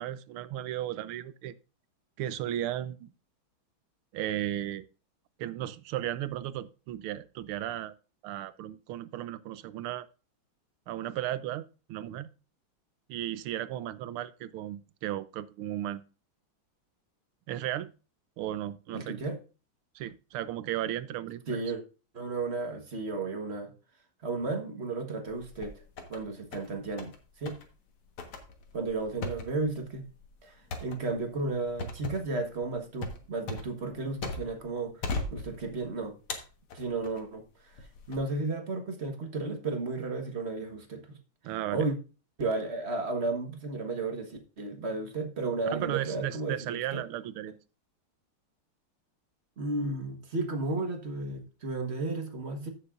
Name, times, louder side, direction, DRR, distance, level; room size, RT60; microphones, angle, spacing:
voice 1, 0.0-1.5 2.2-3.1 4.1-4.9 5.4-7.9 8.2-10.1 10.9-11.6 11.9-12.3 13.1-16.0 17.5-17.9 18.4-19.2 19.9-21.6 41.4-41.8 45.7-47.5, right 12 dB, 90° right, 1.6 m, -35 dB
voice 2, 18.9-19.4 21.5-21.8 22.1-23.7 24.2-25.7 26.1-27.1 27.4-27.6 28.7-30.1 30.4-35.0 35.3-36.2 36.7-41.2 41.7-41.9 42.4-47.0 49.6-52.7, right 3 dB, 35° right, 1.5 m, -33 dB
sound 1, 25.3-26.2 26.5-27.2 27.5-27.7 28.2-34.7 35.0-35.9 36.3-37.2 37.8-38.2, left 2 dB, 90° left, 2.4 m, -38 dB
15.0 x 6.7 x 2.5 m
omnidirectional pair, 2.3 m